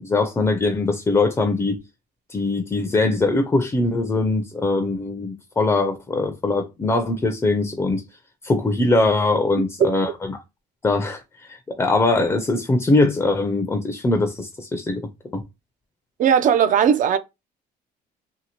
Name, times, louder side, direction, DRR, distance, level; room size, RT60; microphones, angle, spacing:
voice 1, 0.0-1.8 2.3-8.0 8.4-10.4 10.8-15.4, left 2 dB, 15° left, 0.4 m, -22 dB
voice 2, 16.2-17.2, right 8 dB, 50° right, 0.4 m, -17 dB
2.7 x 2.4 x 2.8 m
cardioid pair, 110°, 17 cm